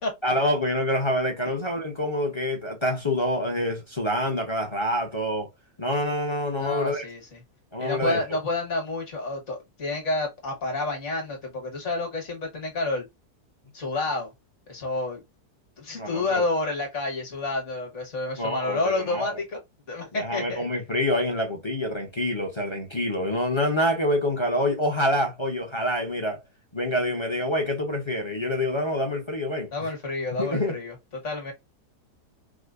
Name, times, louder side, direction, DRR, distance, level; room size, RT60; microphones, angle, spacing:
voice 1, 0.2-5.5 5.8-7.0 7.7-8.2 16.0-16.4 18.4-19.4 20.1-26.4 26.7-29.9 30.3-30.8, left 1 dB, 30° left, 0.6 m, -26 dB
voice 2, 6.6-7.2 7.8-13.0 13.7-14.3 14.7-15.2 15.8-19.6 19.9-20.6 29.7-30.9 31.2-31.5, left 2 dB, 50° left, 1.6 m, -29 dB
4.7 x 2.1 x 2.4 m
omnidirectional pair, 1.7 m